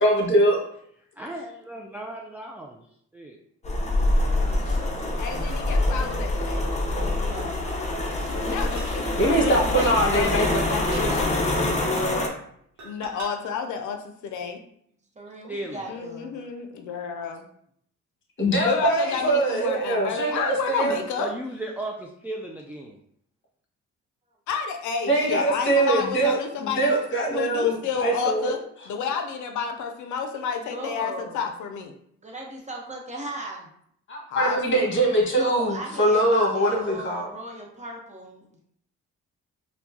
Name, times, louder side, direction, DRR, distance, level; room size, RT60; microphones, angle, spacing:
voice 1, 0.0-0.6 4.7-4.8 9.2-11.0 18.4-21.0 25.1-28.5 34.1-37.3, right 1 dB, 40° left, -2 dB, 1.4 m, -23 dB
voice 2, 1.2-2.9 3.1-3.4 10.5-11.1 15.5-15.8 21.2-23.0, right 1 dB, 5° right, 0 dB, 0.3 m, -35 dB
sound 1, 3.6-12.3, left 1 dB, 25° left, 0.7 m, -25 dB
voice 3, 5.2-6.7 8.4-9.8 10.1-10.8 11.1-11.2 12.8-14.6 15.9-17.5 18.6-21.3 24.5-26.9 27.3-28.6 28.9-31.9 34.3-34.9, left 6 dB, 75° left, 5 dB, 0.5 m, -30 dB
voice 4, 7.2-7.6 8.2-8.3 9.8-10.6 11.0-11.6 15.2-16.4 30.6-31.4 32.2-33.7 35.3-38.4, right 1 dB, 25° right, -1 dB, 0.9 m, -37 dB
sound 2, 8.8-9.0 9.9-10.0 10.4-10.5 10.9-11.1 12.0-12.2 12.8-13.3 14.2-14.3, right 2 dB, 75° right, 0.9 m, -42 dB
4.4 x 2.2 x 2.7 m, 0.67 s
cardioid pair, 90°, 30 cm